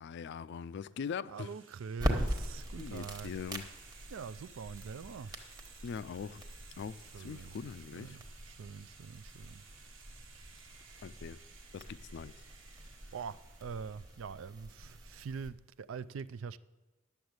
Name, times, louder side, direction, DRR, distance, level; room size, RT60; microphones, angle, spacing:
voice 1, 0.0-1.5 2.8-3.7 5.3-5.5 5.8-6.5 6.8-8.2 11.0-11.4 11.7-12.3, left 6 dB, 60° left, 0.3 m, -42 dB
voice 2, 1.3-3.3 4.1-5.3 7.1-7.5 7.9-9.6 13.1-16.6, right 6 dB, 75° right, 0.4 m, -44 dB
sound 1, 1.3-14.4, right 5 dB, 90° right, 1.5 m, -58 dB
sound 2, 2.0-15.5, equal, 20° right, 1.2 m, -42 dB
10.5 x 7.1 x 7.9 m
head